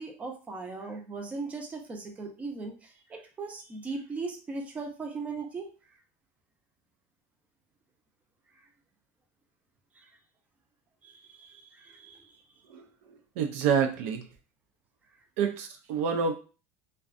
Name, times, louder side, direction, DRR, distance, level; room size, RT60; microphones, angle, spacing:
voice 1, 0.0-5.7 9.9-10.1 11.0-12.4, right 3 dB, 20° right, 2 dB, 0.5 m, -38 dB
voice 2, 13.4-14.3 15.4-16.3, right 6 dB, 70° right, 5 dB, 0.4 m, -27 dB
2.5 x 2.2 x 2.4 m, 0.35 s
supercardioid pair, 135°, 8 cm